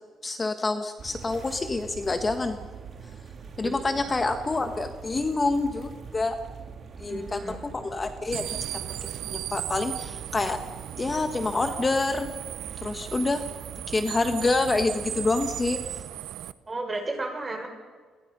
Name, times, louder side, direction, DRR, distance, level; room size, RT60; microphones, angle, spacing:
voice 1, 0.2-2.6 3.6-6.4 7.0-8.5 8.7-10.6 11.0-12.3 12.8-13.5 13.9-15.8, left 3 dB, 25° left, 7 dB, 1.4 m, -27 dB
sound 1, 1.0-16.0, right 6 dB, 50° right, 2.1 m, -43 dB
voice 2, 3.6-4.1 7.1-7.7 16.7-17.7, right 2 dB, 25° right, 3 dB, 6.3 m, -34 dB
sound 2, 8.3-16.5, right 13 dB, 85° right, 0.7 m, -36 dB
27.5 x 21.5 x 5.5 m, 1.5 s
cardioid pair, 90°, 0 cm